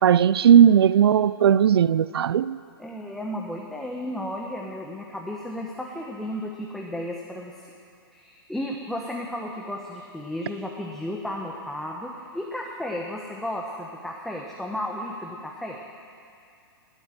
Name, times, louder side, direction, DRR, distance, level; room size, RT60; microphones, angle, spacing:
voice 1, 0.0-2.6, right 9 dB, 80° right, 0.4 m, -17 dB
voice 2, 2.8-7.5 8.1-15.8, left 1 dB, ahead, 1.1 m, -33 dB
19.0 x 8.9 x 7.8 m
hypercardioid pair, 130°, 13 cm